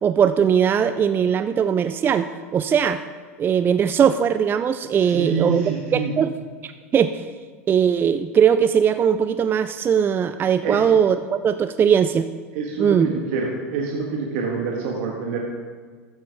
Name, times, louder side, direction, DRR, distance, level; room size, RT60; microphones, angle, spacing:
voice 1, 0.0-3.0 3.4-6.3 6.6-7.2 7.7-12.3 12.8-13.1, right 8 dB, 25° right, 11 dB, 0.4 m, -20 dB
voice 2, 5.0-6.1 10.6-10.8 12.5-15.4, right 4 dB, 60° right, -1 dB, 1.6 m, -26 dB
13.5 x 8.8 x 3.5 m, 1.5 s
hypercardioid pair, 85°, 8 cm